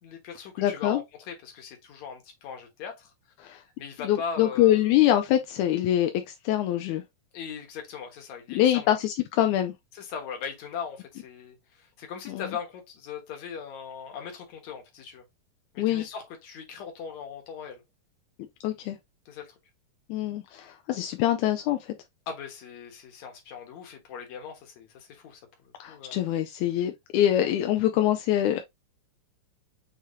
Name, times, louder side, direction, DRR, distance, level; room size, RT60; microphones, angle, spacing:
voice 1, 0.0-3.1 3.4-4.9 7.3-8.9 9.9-15.2 15.7-17.8 19.3-19.5 22.3-26.2, left 6 dB, 60° left, 2.4 m, -39 dB
voice 2, 0.6-1.0 3.4-3.6 4.0-7.0 8.5-9.7 12.3-12.5 15.8-16.1 18.6-19.0 20.1-21.9 25.8-28.6, left 12 dB, 80° left, 1.8 m, -24 dB
6.6 x 3.0 x 2.6 m
omnidirectional pair, 3.8 m